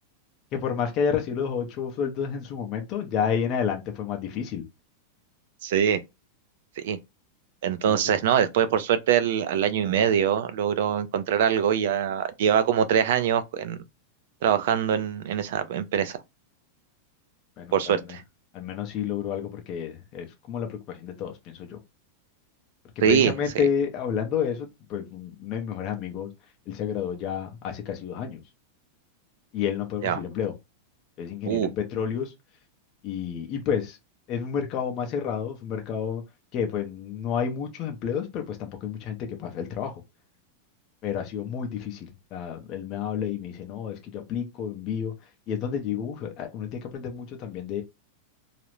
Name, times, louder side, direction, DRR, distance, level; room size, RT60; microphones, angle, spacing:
voice 1, 0.5-4.6 7.8-8.2 17.6-18.0 18.5-21.8 23.1-26.3 26.7-28.4 29.5-30.5 31.2-32.3 33.0-34.0 34.3-36.2 36.5-39.9 41.0-45.1 45.5-47.8, left 7 dB, 30° left, 0.5 m, -30 dB
voice 2, 5.6-6.0 6.8-7.0 7.6-13.8 14.4-16.2 17.7-18.2 23.0-23.3 30.0-30.2 31.5-31.7, right 8 dB, 60° right, 0.4 m, -23 dB
2.4 x 2.0 x 3.0 m
supercardioid pair, 170°, 0 cm